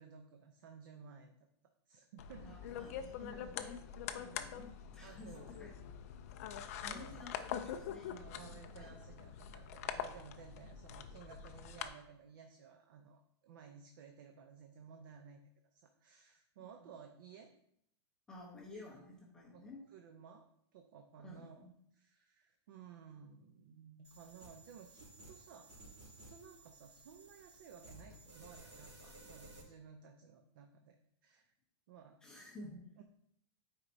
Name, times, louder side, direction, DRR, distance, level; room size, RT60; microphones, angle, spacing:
voice 1, 0.0-1.3 1.9-2.6 5.0-5.5 6.5-7.3 8.2-15.4 15.7-17.5 18.7-18.9 19.5-19.6 19.9-25.7 26.0-31.0 31.2-31.5 31.9-32.2 33.0-33.1, right 7 dB, 50° right, 4 dB, 0.6 m, -56 dB
sound 1, 2.2-11.9, left 9 dB, 35° left, 0.3 m, -44 dB
voice 2, 2.4-3.8 4.1-5.8 6.8-8.9 16.8-16.9 18.3-19.8 21.2-21.7 32.2-32.8, left 2 dB, 5° left, -4 dB, 0.7 m, -53 dB
sound 2, 24.0-29.6, right 2 dB, 75° right, 2.6 m, -57 dB
9.1 x 4.4 x 2.6 m, 0.71 s
supercardioid pair, 180°, 14 cm